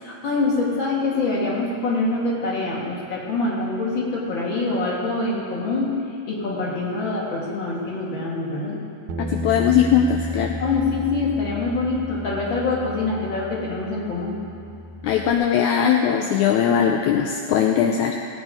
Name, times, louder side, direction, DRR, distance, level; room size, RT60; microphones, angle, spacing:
voice 1, 0.0-6.0 6.3-8.8 10.6-14.4, left 3 dB, 40° left, -4 dB, 2.9 m, -25 dB
Bass guitar, 9.1-15.3, left 1 dB, 85° right, 2.3 m, -34 dB
voice 2, 9.2-10.6 15.0-18.2, left 8 dB, 80° left, 2 dB, 2.0 m, -20 dB
18.5 x 9.0 x 5.0 m, 2.5 s
omnidirectional pair, 3.5 m